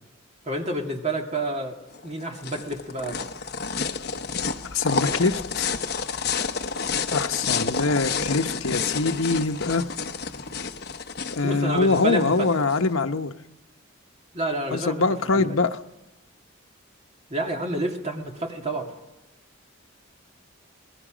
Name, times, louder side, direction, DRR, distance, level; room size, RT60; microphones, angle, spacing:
voice 1, 0.4-1.8 2.0-3.2 11.4-12.5 14.3-15.0 15.3-15.5 17.3-18.9, right 1 dB, 30° right, 2 dB, 2.4 m, -29 dB
sound 1, 1.9-12.8, left 5 dB, 50° left, 1.0 m, -30 dB
voice 2, 4.7-5.7 7.1-9.9 11.3-13.3 14.7-15.8, left 3 dB, 75° left, 6 dB, 1.0 m, -23 dB
27.0 x 20.0 x 5.1 m, 1.0 s
head